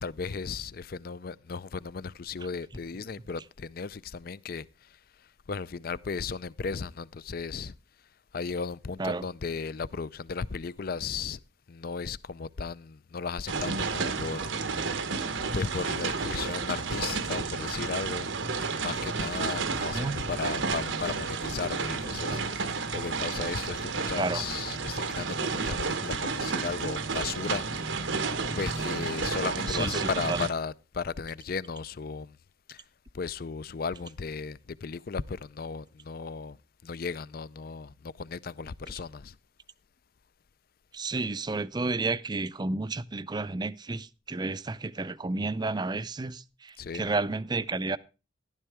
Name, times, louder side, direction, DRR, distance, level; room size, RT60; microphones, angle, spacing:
voice 1, 0.0-4.9 5.5-7.7 8.3-11.4 11.7-14.5 14.8-14.9 15.5-18.3 18.7-27.8 28.6-32.4 32.7-32.8 33.1-36.6 36.8-39.4 46.8-47.0, left 5 dB, 50° left, 0.5 m, -35 dB
sound 1, 13.5-30.5, right 4 dB, 85° right, 1.1 m, -31 dB
voice 2, 29.7-30.5 40.9-48.0, right 3 dB, 20° right, 0.5 m, -31 dB
13.0 x 12.0 x 3.5 m
head